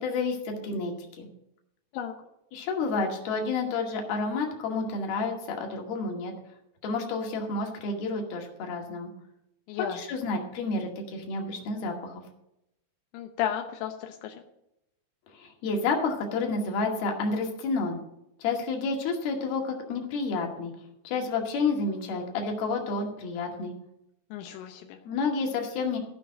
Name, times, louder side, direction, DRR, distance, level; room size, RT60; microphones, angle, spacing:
voice 1, 0.0-1.3 2.5-6.3 6.8-9.1 9.9-12.2 15.3-18.0 18.4-20.7 21.0-23.7 25.1-26.0, left 3 dB, 60° left, 1 dB, 3.7 m, -30 dB
voice 2, 9.7-10.0 13.1-14.4 24.3-25.0, left 10 dB, 85° left, 4 dB, 3.3 m, -33 dB
15.5 x 5.7 x 7.6 m, 0.82 s
omnidirectional pair, 5.2 m